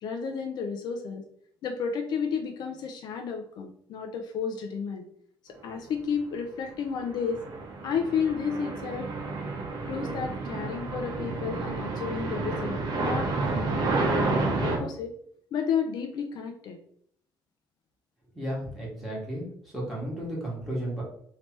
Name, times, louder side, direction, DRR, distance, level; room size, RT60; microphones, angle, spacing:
voice 1, 0.0-1.2 1.6-5.1 5.4-7.4 7.8-9.1 9.8-15.1 15.5-16.8, left 6 dB, 65° left, 4 dB, 0.5 m, -32 dB
sound 1, 6.9-14.8, right 3 dB, 55° right, 1.0 m, -30 dB
voice 2, 18.3-19.5 19.7-21.0, right 1 dB, ahead, -6 dB, 1.6 m, -33 dB
3.2 x 2.9 x 4.3 m, 0.65 s
cardioid pair, 165°, 8 cm